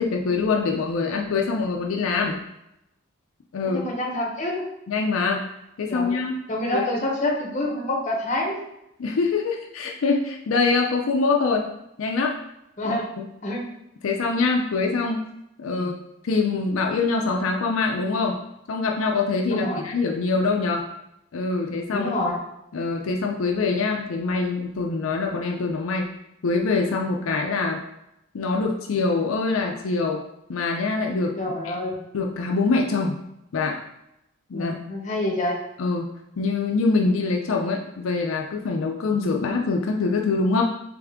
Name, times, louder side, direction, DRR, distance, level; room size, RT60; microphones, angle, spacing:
voice 1, 0.0-2.4 3.5-3.8 4.9-5.5 5.8-6.4 6.7-6.9 9.0-11.7 12.0-12.4 12.8-13.2 14.0-15.2 15.6-15.9 16.2-18.4 18.7-20.9 21.3-22.1 22.7-26.1 26.4-27.8 28.3-30.2 30.5-31.4 31.6-31.7 32.1-33.2 33.5-33.8 34.5-34.7 35.8-40.6, left 4 dB, 75° left, 1 dB, 0.4 m, -24 dB
voice 2, 3.6-4.7 5.9-6.2 6.5-8.6 12.8-13.1 13.4-13.6 15.7-15.9 19.5-19.9 21.9-22.4 31.4-32.0 34.5-35.6, left 1 dB, 35° left, -1 dB, 0.7 m, -27 dB
3.5 x 3.4 x 3.5 m, 0.85 s
head